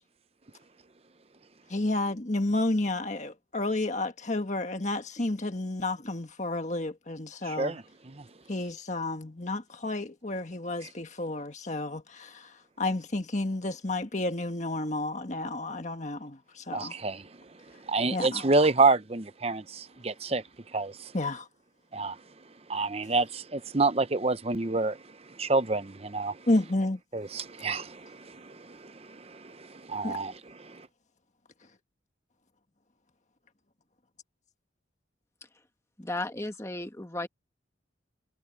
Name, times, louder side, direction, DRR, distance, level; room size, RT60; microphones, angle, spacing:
voice 1, 1.7-7.8 8.5-12.5 12.8-16.9 18.1-18.4 21.1-21.5 26.5-27.0 30.0-30.2, left 2 dB, 40° left, 1.6 m, -31 dB
voice 2, 7.4-8.2 10.8-10.9 16.7-17.3 17.9-20.4 20.7-21.1 21.9-22.2 22.7-25.0 25.4-26.4 27.1-30.9, right 3 dB, 30° right, 0.8 m, -28 dB
voice 3, 36.0-37.3, left 2 dB, 15° left, 1.5 m, -34 dB
head